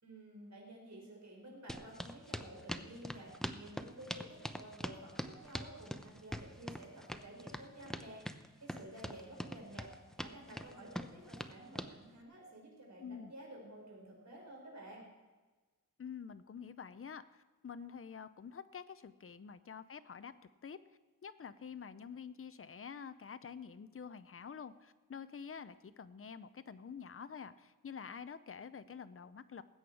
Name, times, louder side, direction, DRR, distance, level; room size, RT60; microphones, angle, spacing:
voice 1, 0.0-15.1, right 1 dB, 55° right, -2 dB, 5.5 m, -52 dB
sound 1, 1.7-11.9, equal, ahead, 0.7 m, -43 dB
voice 2, 13.0-13.3 16.0-20.3 20.6-20.8 21.2-29.6, left 6 dB, 40° left, 13 dB, 0.7 m, -48 dB
20.0 x 8.8 x 4.7 m, 1.3 s
wide cardioid pair, 85°, 34 cm